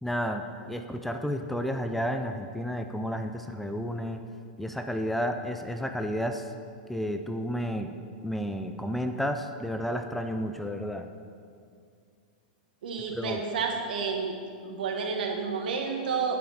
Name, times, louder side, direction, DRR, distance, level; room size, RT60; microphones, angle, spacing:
voice 1, 0.0-4.2 4.6-6.5 6.9-7.9 8.2-11.1 13.1-13.4, equal, 5° left, 6 dB, 0.5 m, -31 dB
voice 2, 12.8-14.4 14.6-16.4, right 5 dB, 75° right, 2 dB, 1.8 m, -30 dB
16.5 x 5.7 x 4.3 m, 2.3 s
hypercardioid pair, 135°, 5 cm